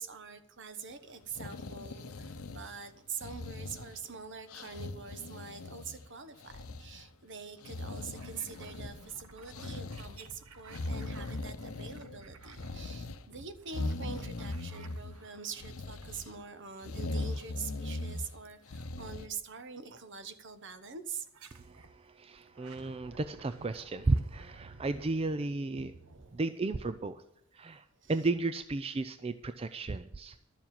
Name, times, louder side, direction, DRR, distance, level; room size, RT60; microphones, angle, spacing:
voice 1, 0.0-21.3 28.0-28.1, right 5 dB, 55° right, 10 dB, 1.2 m, -44 dB
sound 1, 1.2-2.9 3.2-4.1 4.5-6.1 6.4-7.0 7.6-9.1 9.5-10.3 10.7-12.2 12.5-13.2 13.7-15.2 15.5-16.3 16.8-18.3 18.7-19.3, left 2 dB, 75° left, 0.8 m, -40 dB
sound 2, 8.1-15.6 16.0-16.8 18.5-18.9 19.9-20.0 21.2-22.0 22.4-26.8, right 3 dB, 80° right, 1.2 m, -54 dB
voice 2, 21.5-25.9 26.3-27.2 27.5-30.4, right 3 dB, 25° right, 11 dB, 0.4 m, -34 dB
12.5 x 7.2 x 7.4 m, 0.83 s
head